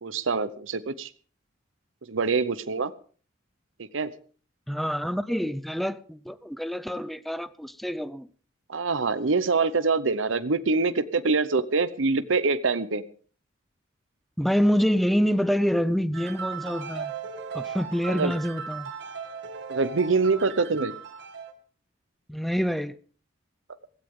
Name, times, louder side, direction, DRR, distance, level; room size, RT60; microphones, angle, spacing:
voice 1, 0.0-1.1 2.1-2.9 3.8-4.1 8.7-13.0 18.1-18.3 19.7-20.9, right 4 dB, 80° right, 0.8 m, -25 dB
voice 2, 4.7-8.3 14.4-17.1 17.5-18.9 22.3-23.0, equal, ahead, 0.6 m, -26 dB
sound 1, 16.1-21.5, right 6 dB, 60° right, 2.0 m, -37 dB
16.5 x 16.0 x 3.7 m
head